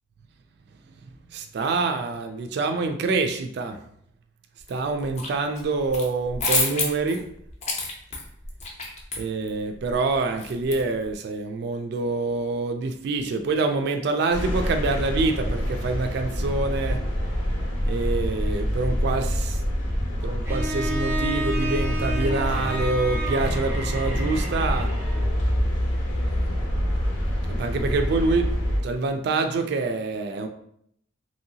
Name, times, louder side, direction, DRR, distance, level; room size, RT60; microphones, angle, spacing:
voice 1, 1.3-3.8 4.7-7.2 9.2-17.0 17.9-19.6 20.2-24.9 26.2-26.7 27.6-28.5 28.8-30.5, right 3 dB, 55° right, 6 dB, 0.3 m, -26 dB
sound 1, 4.7-5.3 5.6-11.1, left 3 dB, 35° left, 0.6 m, -29 dB
sound 2, 14.3-28.8, equal, 80° left, 0.8 m, -26 dB
Bowed string instrument, 20.5-25.3, right 1 dB, 10° right, 0.6 m, -32 dB
3.0 x 2.7 x 2.7 m, 0.68 s
head